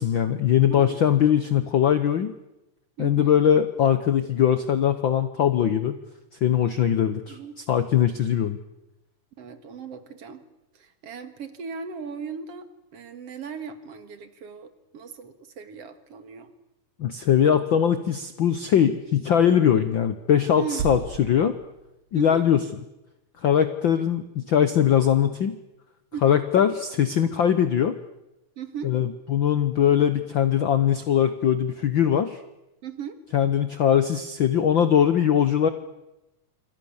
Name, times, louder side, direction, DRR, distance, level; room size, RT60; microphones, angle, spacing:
voice 1, 0.0-2.3 3.0-6.0 6.4-7.4 7.7-8.6 17.0-21.5 22.1-22.6 23.4-25.6 26.2-28.0 28.8-32.4 33.3-35.7, left 9 dB, 90° left, 11 dB, 1.0 m, -21 dB
voice 2, 3.0-3.4 7.3-7.6 9.4-10.4 10.7-12.7 12.9-16.5 20.6-20.9 22.1-22.4 26.1-26.4 28.6-29.0 32.8-33.2, right 6 dB, 50° right, 10 dB, 2.5 m, -37 dB
sound 1, 20.8-22.6, right 6 dB, 85° right, 3.0 m, -35 dB
27.0 x 24.5 x 7.2 m, 0.97 s
omnidirectional pair, 3.7 m